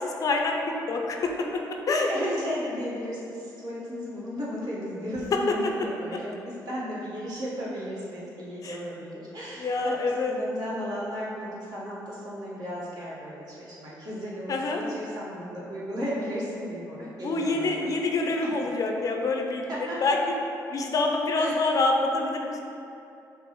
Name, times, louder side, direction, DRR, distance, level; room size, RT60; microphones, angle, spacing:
voice 1, 0.0-1.6 1.9-2.1 8.6-8.8 9.6-10.3 14.5-14.8 17.2-19.7 20.0-20.2 20.7-22.6, left 3 dB, 50° left, 2 dB, 0.4 m, -26 dB
voice 2, 2.1-9.9 10.2-17.9 18.4-18.5 19.7-20.1 21.4-21.7, equal, 60° right, -7 dB, 1.2 m, -35 dB
5.9 x 2.0 x 3.0 m, 2.7 s
cardioid pair, 70°, 7 cm